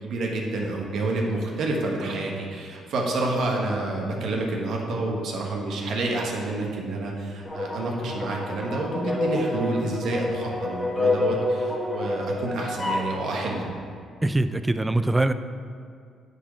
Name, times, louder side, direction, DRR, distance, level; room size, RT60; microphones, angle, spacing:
voice 1, 0.0-13.6, right 2 dB, 75° right, 0 dB, 1.3 m, -28 dB
sound 1, 7.4-13.1, left 2 dB, 20° left, 1.2 m, -28 dB
voice 2, 14.2-15.3, right 2 dB, 15° right, 11 dB, 0.3 m, -22 dB
9.8 x 4.2 x 5.0 m, 2.2 s
cardioid pair, 90°, 0 cm